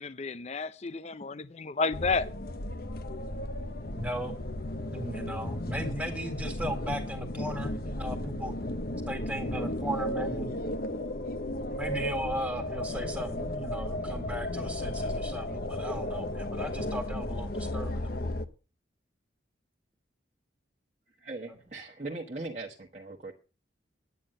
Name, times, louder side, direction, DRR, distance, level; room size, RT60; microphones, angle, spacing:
voice 1, 0.0-2.3, left 4 dB, 35° left, 0.5 m, -31 dB
sound 1, 1.9-18.5, left 1 dB, 50° left, 0.9 m, -34 dB
voice 2, 3.9-4.4 4.9-8.5 9.1-10.5 11.7-18.3, equal, 10° right, 1.8 m, -37 dB
voice 3, 21.2-23.3, right 2 dB, 35° right, 1.3 m, -39 dB
11.0 x 9.3 x 6.5 m
head